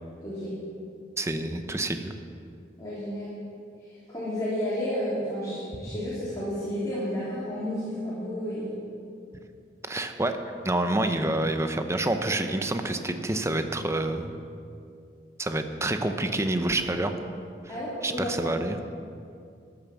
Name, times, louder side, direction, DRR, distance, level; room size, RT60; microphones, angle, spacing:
voice 1, 0.2-0.5 2.8-3.3 3.9-8.7 17.7-18.3, equal, 20° left, -10 dB, 3.2 m, -31 dB
voice 2, 1.2-2.1 9.9-10.4 10.6-14.4 15.4-17.1 18.0-18.8, right 2 dB, 15° right, 7 dB, 0.7 m, -27 dB
14.5 x 8.8 x 6.2 m, 2.4 s
head